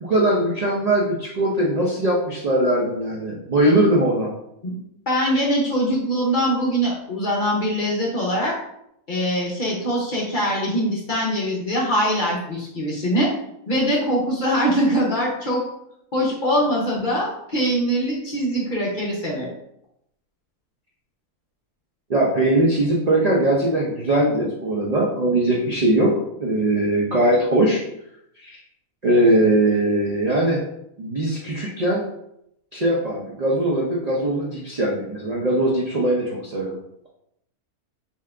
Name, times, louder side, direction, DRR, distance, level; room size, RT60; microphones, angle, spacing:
voice 1, 0.0-4.3 22.1-26.1 26.4-27.8 28.4-28.6 29.0-30.6 31.0-32.0 32.7-36.8, right 1 dB, 80° right, -4 dB, 0.3 m, -20 dB
voice 2, 5.1-8.6 9.1-13.3 13.7-15.6 16.1-19.5, equal, 45° left, -4 dB, 0.7 m, -22 dB
3.7 x 2.8 x 3.3 m, 0.77 s
omnidirectional pair, 1.6 m